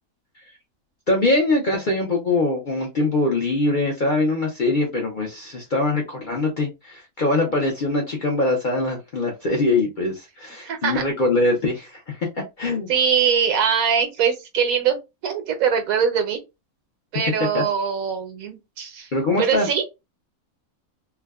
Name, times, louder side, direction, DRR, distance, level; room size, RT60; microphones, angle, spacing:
voice 1, 1.1-12.9 17.5-17.6 19.1-19.7, left 2 dB, 50° left, 0.6 m, -23 dB
voice 2, 10.6-11.0 12.9-16.4 17.1-19.1 19.4-19.8, right 7 dB, 75° right, 1.2 m, -22 dB
3.4 x 2.2 x 2.3 m
omnidirectional pair, 1.5 m